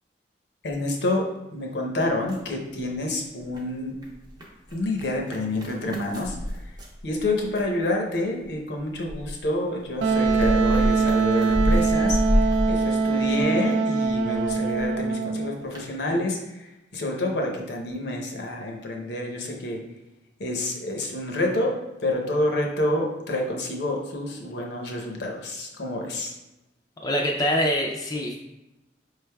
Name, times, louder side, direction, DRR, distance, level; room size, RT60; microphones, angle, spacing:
voice 1, 0.6-3.9 4.7-6.4 7.0-19.8 20.4-26.3, left 1 dB, 70° left, 1 dB, 0.7 m, -28 dB
sound 1, 2.3-3.1 3.4-7.8 8.4-13.7 14.0-14.9 15.3-15.4 15.7-15.9, equal, 25° right, 0.6 m, -28 dB
Wind instrument woodwind instrument, 10.0-15.6, right 4 dB, 90° right, 0.3 m, -23 dB
voice 2, 27.0-28.4, equal, 20° left, -1 dB, 0.4 m, -24 dB
5.1 x 3.3 x 2.2 m, 0.97 s
head